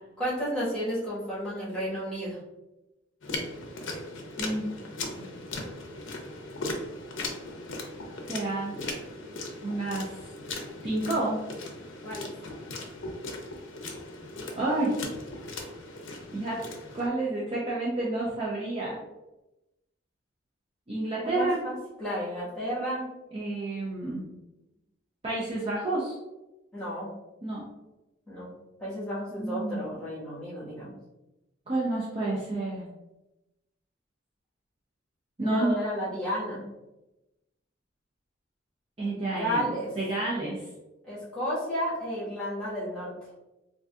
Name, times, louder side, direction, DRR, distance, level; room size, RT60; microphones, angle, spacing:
voice 1, 0.2-2.4 12.0-12.3 21.2-23.1 26.7-27.1 28.3-28.5 28.8-30.9 35.4-36.6 39.3-39.9 41.0-43.1, equal, 5° left, -10 dB, 1.3 m, -32 dB
sound 1, 3.2-17.1, left 2 dB, 75° left, 0.5 m, -38 dB
voice 2, 4.4-4.7 5.2-5.3 8.3-8.8 9.6-10.1 10.8-11.4 14.6-15.0 16.3-16.6 16.9-19.0 20.9-21.6 23.3-24.2 25.2-26.1 27.4-27.7 29.3-29.8 31.7-32.8 35.4-35.8 39.0-39.6 40.0-40.6, right 2 dB, 30° right, -6 dB, 0.5 m, -29 dB
3.6 x 2.6 x 2.4 m, 0.98 s
head